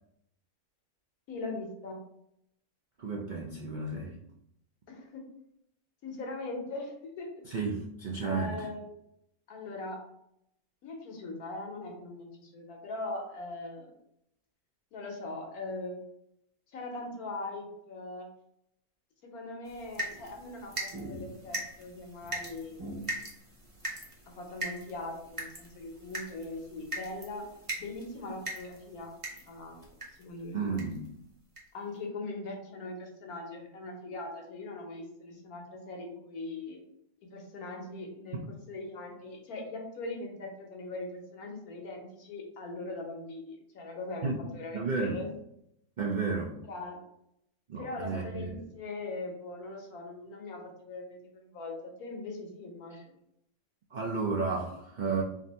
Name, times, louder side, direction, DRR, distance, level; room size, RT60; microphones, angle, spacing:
voice 1, 1.3-2.0 4.9-5.2 6.0-7.3 8.2-8.9 9.5-10.0 10.8-14.0 14.9-16.0 16.7-18.3 19.3-22.9 24.4-27.5 27.8-29.1 29.5-29.8 30.2-30.6 31.7-36.8 37.2-45.3 46.7-47.0 47.8-53.1, left 2 dB, 80° left, 0 dB, 1.4 m, -40 dB
voice 2, 3.0-4.2 7.5-8.6 30.5-31.0 44.2-44.4 44.7-45.2 46.0-46.6 47.7-48.4 53.9-55.2, right 4 dB, 85° right, -1 dB, 0.4 m, -32 dB
sound 1, 19.7-30.3 30.7-31.1 31.6-31.7 32.0-32.1, right 1 dB, 30° right, 0.7 m, -41 dB
3.6 x 2.6 x 4.1 m, 0.77 s
omnidirectional pair, 1.5 m